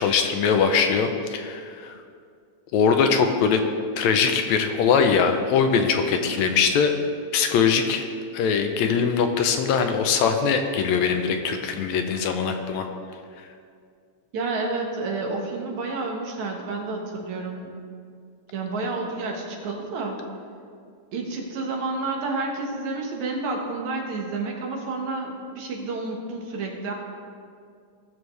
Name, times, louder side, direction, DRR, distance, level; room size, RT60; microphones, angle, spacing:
voice 1, 0.0-2.0 2.7-3.6 4.0-6.9 7.3-8.1 8.3-12.9, left 6 dB, 80° left, 6 dB, 2.0 m, -22 dB
voice 2, 14.3-17.7 18.5-20.2 21.1-26.9, right 3 dB, 75° right, 0 dB, 2.7 m, -30 dB
18.5 x 7.2 x 3.2 m, 2.2 s
omnidirectional pair, 3.3 m